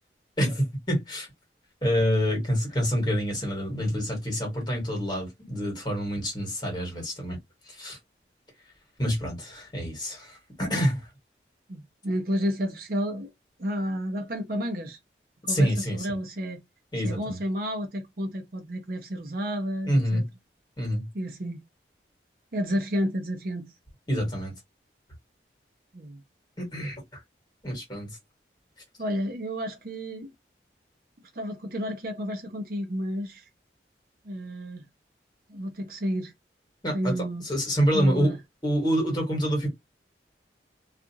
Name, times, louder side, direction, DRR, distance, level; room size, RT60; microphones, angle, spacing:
voice 1, 0.4-1.3 1.8-7.4 7.7-8.0 9.0-11.0 15.5-16.2 16.9-17.4 19.8-20.3 20.8-21.1 24.1-24.5 26.6-27.2 27.6-28.2 36.8-38.3 38.6-39.7, equal, 25° left, 1.4 m, -27 dB
voice 2, 11.7-13.3 13.6-15.0 15.4-16.6 17.0-20.2 21.1-21.6 22.5-23.7 25.9-26.2 29.0-30.3 31.3-33.5 34.2-34.8 35.5-36.3 36.9-37.4 37.9-38.4, equal, 55° right, 0.7 m, -31 dB
2.4 x 2.4 x 2.7 m
head